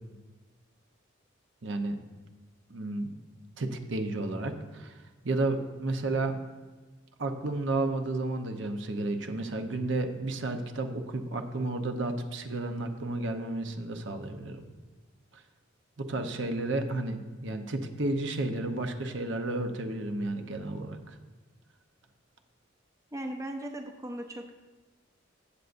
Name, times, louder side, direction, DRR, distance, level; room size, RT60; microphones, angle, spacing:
voice 1, 1.6-2.0 2.7-3.2 3.6-5.0 5.2-6.3 7.2-14.6 15.3-15.4 16.0-21.1, right 2 dB, 65° right, 5 dB, 0.9 m, -32 dB
voice 2, 23.1-24.5, right 1 dB, 15° right, 4 dB, 0.5 m, -37 dB
15.0 x 7.9 x 2.6 m, 1.3 s
head